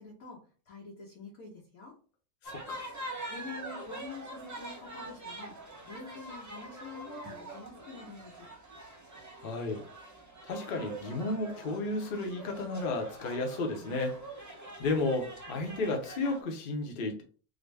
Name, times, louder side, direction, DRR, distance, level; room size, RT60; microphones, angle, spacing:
voice 1, 0.0-2.0 3.3-5.6 5.9-8.5, left 4 dB, 90° left, 1.5 m, -47 dB
voice 2, 2.4-2.9 9.4-9.8 10.4-14.2 14.8-17.2, left 2 dB, 50° left, 0.7 m, -33 dB
sound 1, 2.4-16.4, right 2 dB, 20° right, 0.5 m, -45 dB
3.7 x 2.1 x 3.3 m
omnidirectional pair, 1.5 m